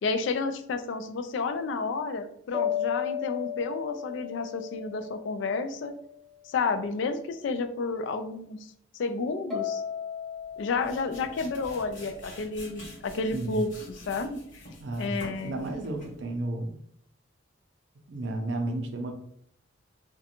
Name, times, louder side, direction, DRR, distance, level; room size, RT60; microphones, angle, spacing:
voice 1, 0.0-5.9 6.4-8.6 8.9-9.8 10.6-13.7 14.1-14.6 15.0-15.6, left 4 dB, 65° left, 9 dB, 0.3 m, -31 dB
sound 1, 2.5-6.1 9.5-12.5, left 9 dB, ahead, 0.7 m, -35 dB
sound 2, 10.4-16.3, left 1 dB, 40° left, 1.0 m, -47 dB
voice 2, 14.8-15.1 15.4-16.8 18.1-19.1, right 2 dB, 60° right, 3 dB, 0.4 m, -32 dB
2.5 x 2.2 x 2.8 m, 0.70 s
head